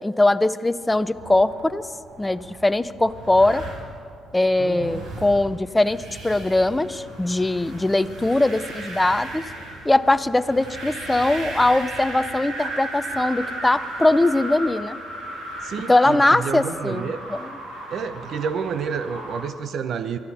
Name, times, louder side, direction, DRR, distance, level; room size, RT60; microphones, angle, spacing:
voice 1, 0.0-1.8 2.2-3.6 4.3-9.5 9.8-15.0 15.9-17.5, left 2 dB, 15° left, 13 dB, 0.6 m, -21 dB
sound 1, 0.9-19.4, right 1 dB, 85° right, 4.3 m, -36 dB
voice 2, 4.6-5.0 15.6-17.2 17.9-20.2, right 6 dB, 65° right, 10 dB, 0.8 m, -29 dB
23.5 x 14.0 x 4.2 m, 2.3 s
cardioid pair, 90°, 0 cm